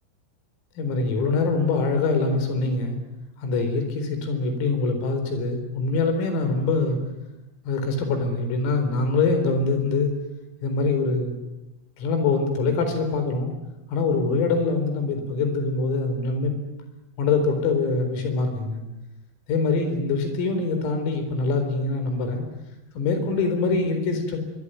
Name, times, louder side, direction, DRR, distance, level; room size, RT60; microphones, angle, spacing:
voice 1, 0.8-3.0 3.4-7.0 7.7-10.1 10.6-11.4 12.0-13.5 13.9-16.5 17.2-18.8 19.5-22.4 23.0-24.4, left 3 dB, 80° left, 7 dB, 6.9 m, -24 dB
24.5 x 23.0 x 9.3 m, 0.94 s
omnidirectional pair, 5.9 m